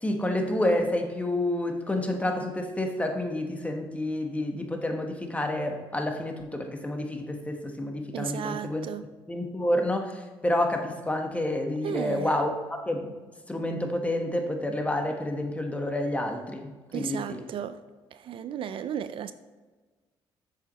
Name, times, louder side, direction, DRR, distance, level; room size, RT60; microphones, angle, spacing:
voice 1, 0.0-8.9 9.3-13.1 13.5-17.5, left 1 dB, 15° left, 1.3 m, -29 dB
voice 2, 8.1-9.0 11.8-12.3 16.9-17.8 18.1-19.3, right 9 dB, 65° right, 0.4 m, -34 dB
7.7 x 6.7 x 3.1 m
cardioid pair, 75°, 10 cm